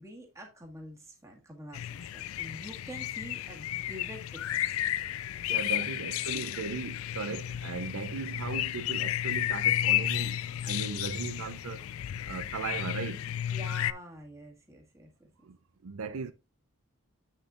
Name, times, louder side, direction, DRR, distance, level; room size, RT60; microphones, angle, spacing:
voice 1, 0.0-4.6 5.8-5.9 6.3-6.5 13.5-15.3, equal, 15° right, 1.7 m, -47 dB
sound 1, 1.7-13.9, left 12 dB, 75° left, 0.3 m, -32 dB
voice 2, 5.5-11.8 12.2-13.2 15.4-15.6 15.8-16.3, right 4 dB, 80° right, 0.6 m, -37 dB
8.0 x 6.6 x 2.5 m
head